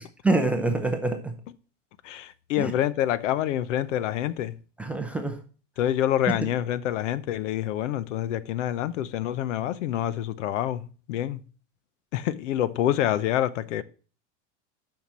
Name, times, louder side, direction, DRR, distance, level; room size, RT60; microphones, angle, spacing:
voice 1, 0.0-1.3 2.6-2.7 4.8-5.4, right 2 dB, 5° right, 0.4 m, -26 dB
voice 2, 2.0-4.6 5.8-11.4 12.1-13.8, left 11 dB, 85° left, 0.9 m, -27 dB
7.2 x 5.8 x 6.1 m
supercardioid pair, 165°, 36 cm